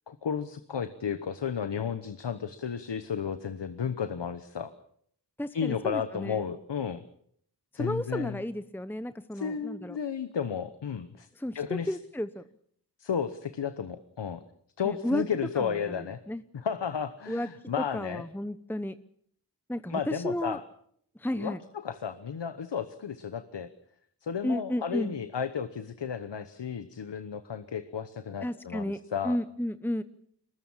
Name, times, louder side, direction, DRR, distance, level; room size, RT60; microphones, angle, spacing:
voice 1, 0.1-4.7 5.5-7.0 7.7-8.4 9.3-11.3 11.5-12.0 13.0-14.4 14.8-16.2 16.5-18.2 19.9-20.6 21.3-21.5 21.8-23.7 24.2-29.4, left 7 dB, 85° left, 12 dB, 1.1 m, -33 dB
voice 2, 5.4-6.4 7.7-10.0 11.4-12.4 14.8-15.2 15.6-16.4 17.3-17.5 17.8-18.9 19.7-20.6 21.2-21.6 24.4-25.1 28.4-29.0 29.2-30.0, left 1 dB, 5° left, 12 dB, 0.9 m, -33 dB
23.5 x 20.5 x 7.3 m, 0.67 s
cardioid pair, 45°, 41 cm